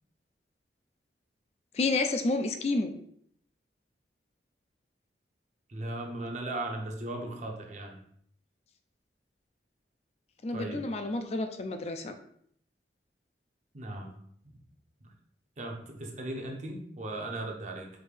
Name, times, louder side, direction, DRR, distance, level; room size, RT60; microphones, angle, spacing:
voice 1, 1.7-2.9 10.4-12.2, left 3 dB, 35° left, 7 dB, 0.3 m, -30 dB
voice 2, 5.7-8.0 10.5-10.9 13.7-14.2 15.0-15.1 15.6-17.9, right 2 dB, 40° right, 2 dB, 0.7 m, -37 dB
5.0 x 2.7 x 3.3 m, 0.66 s
head